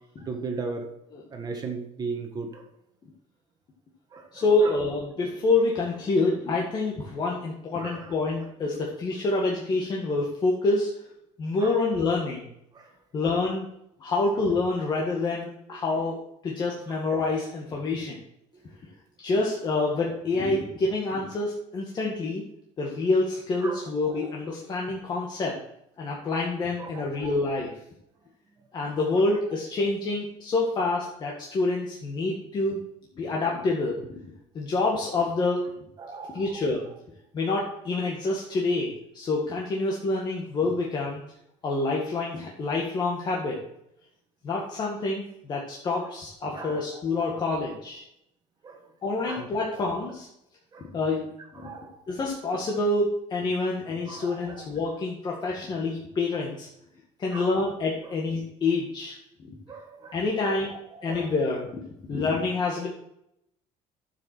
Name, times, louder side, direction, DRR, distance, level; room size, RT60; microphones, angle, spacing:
voice 1, 0.2-0.9 1.3-2.6 4.1-4.7 7.8-8.4 11.6-11.8 12.7-12.9 16.9-17.0 23.6-24.3 26.8-27.3 29.2-29.3 36.0-36.6 46.5-47.3 48.6-48.9 49.2-49.5 49.7-49.9 50.7-50.9 51.5-52.0 54.0-54.6 57.3-57.7 59.7-61.4, right 4 dB, 30° right, 3 dB, 1.5 m, -38 dB
voice 2, 4.3-10.9 11.4-12.5 13.1-13.7 14.0-18.2 19.2-22.5 22.8-25.6 26.0-27.7 28.7-32.8 33.2-35.7 36.3-36.9 37.3-41.2 41.6-43.6 44.4-48.0 49.0-50.3 50.9-51.3 51.5-51.7 52.1-56.7 57.2-59.5 60.1-60.7 61.0-61.8 62.1-62.9, left 3 dB, 35° left, -2 dB, 1.8 m, -27 dB
10.5 x 7.6 x 4.5 m, 0.77 s
cardioid pair, 155°, 13 cm